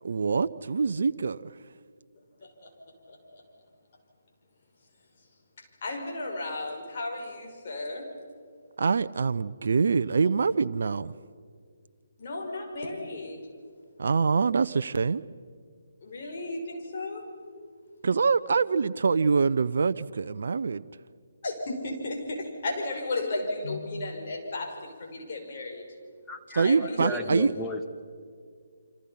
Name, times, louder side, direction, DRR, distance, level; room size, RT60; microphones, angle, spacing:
voice 1, 0.0-1.5 8.8-11.1 14.0-15.2 18.0-20.8 26.5-27.5, right 5 dB, 65° right, 12 dB, 0.6 m, -25 dB
voice 2, 3.1-3.4 5.8-8.1 12.2-13.4 16.0-17.2 21.4-25.8 26.6-27.2, left 2 dB, 50° left, 1 dB, 6.0 m, -34 dB
voice 3, 26.3-27.9, left 1 dB, 10° left, 4 dB, 1.7 m, -35 dB
28.5 x 25.5 x 5.8 m, 2.1 s
figure-of-eight pair, 145°, 0 cm